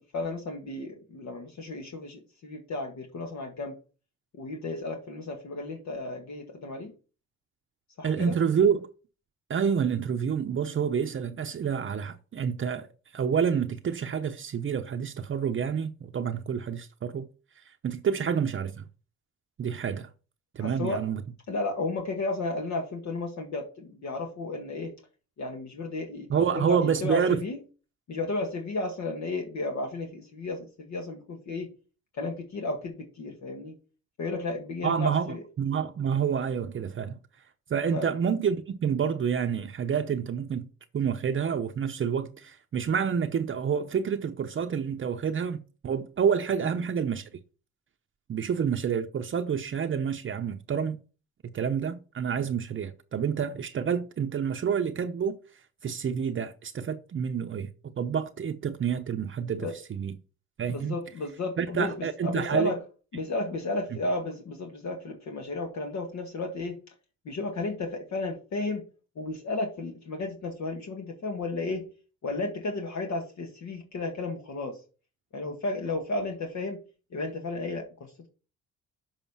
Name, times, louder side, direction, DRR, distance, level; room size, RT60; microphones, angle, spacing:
voice 1, 0.0-3.8 4.3-6.9 8.0-8.4 18.1-18.3 20.6-21.1 21.5-24.9 25.4-27.6 28.1-31.7 32.1-33.8 34.2-35.5 37.9-38.1 46.6-46.7 59.6-59.8 60.7-62.8 63.1-66.8 67.3-68.9 69.2-71.9 72.2-74.8 75.3-76.8 77.1-78.3, left 2 dB, 65° left, 1.8 m, -33 dB
voice 2, 8.0-8.9 9.5-12.9 13.1-17.3 17.8-18.9 19.6-20.1 20.5-21.2 26.3-27.4 34.8-37.2 37.7-40.7 40.9-47.3 48.3-51.0 51.4-55.4 55.8-60.1 60.6-61.0 61.6-62.7, right 7 dB, 40° right, 0.8 m, -28 dB
7.3 x 5.2 x 5.6 m
cardioid pair, 90°, 30 cm